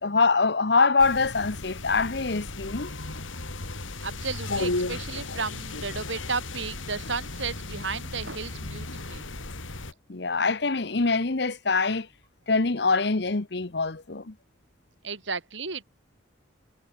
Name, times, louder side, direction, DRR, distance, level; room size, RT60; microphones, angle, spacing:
voice 1, 0.0-2.9 10.1-12.1 12.5-14.3, left 4 dB, 60° left, 1.1 m, -24 dB
sound 1, 1.0-9.9, left 2 dB, 90° left, 3.2 m, -35 dB
voice 2, 4.0-9.2 15.0-15.8, right 4 dB, 75° right, 4.9 m, -33 dB
head